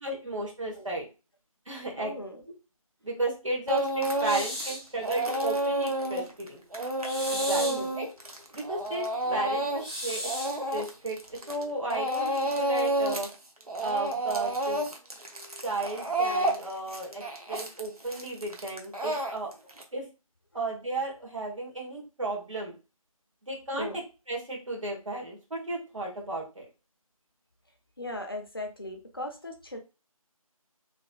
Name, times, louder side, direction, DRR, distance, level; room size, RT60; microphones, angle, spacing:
voice 1, 0.0-1.1 1.7-2.1 3.0-6.6 7.3-7.6 7.9-8.1 8.5-9.0 9.3-10.3 10.7-13.3 13.8-14.8 15.6-19.5 19.9-20.0 20.5-22.7 23.5-23.9 24.3-26.7, right 2 dB, 60° right, -2 dB, 1.5 m, -34 dB
voice 2, 2.0-2.4 7.6-8.0 9.2-9.4 20.5-20.6 23.7-24.0 28.0-29.8, left 1 dB, 40° left, 3 dB, 0.5 m, -38 dB
Speech / Crying sobbing, 3.7-4.7 5.0-11.6 11.9-13.3 13.6-19.8, right 1 dB, 85° right, 0.8 m, -30 dB
sound 1, 4.2-4.9 7.0-7.9 9.8-10.6, equal, 10° right, 0.8 m, -35 dB
3.2 x 2.7 x 2.4 m, 0.30 s
figure-of-eight pair, 170°, 18 cm